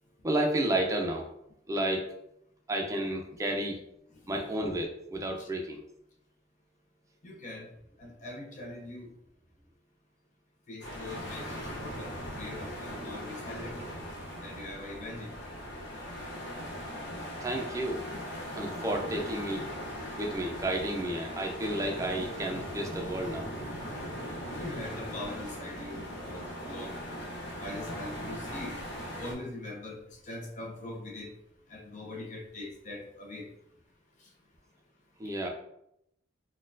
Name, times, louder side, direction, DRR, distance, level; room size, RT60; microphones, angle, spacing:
voice 1, 0.2-1.3 1.7-2.1 2.7-3.8 4.3-5.8 17.1-18.0 18.5-19.7 20.2-23.5 35.2-35.5, right 1 dB, 15° right, 2 dB, 0.4 m, -31 dB
voice 2, 7.2-7.7 8.0-9.1 10.7-12.1 12.4-13.8 14.4-15.3 24.6-26.9 27.6-28.7 29.2-30.0 30.3-31.3 31.7-33.5, left 2 dB, 40° left, 0 dB, 0.6 m, -41 dB
sound 1, 10.8-29.3, equal, 75° left, 0.8 m, -39 dB
4.0 x 2.3 x 2.6 m, 0.78 s
head